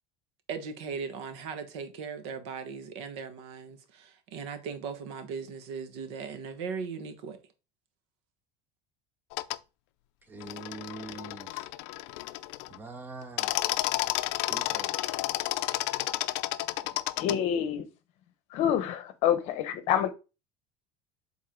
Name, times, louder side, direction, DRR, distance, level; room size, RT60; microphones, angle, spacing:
voice 1, 0.5-7.4, right 5 dB, 80° right, 1.3 m, -38 dB
sound 1, 9.3-9.6 10.4-12.8 13.2-17.4, left 17 dB, 75° left, 0.4 m, -31 dB
voice 2, 10.2-11.7 12.7-13.6 14.5-15.0, right 3 dB, 15° right, 0.8 m, -43 dB
voice 3, 17.1-17.9 18.5-20.1, left 10 dB, 50° left, 0.9 m, -27 dB
7.7 x 3.9 x 3.7 m
cardioid pair, 175°, 14 cm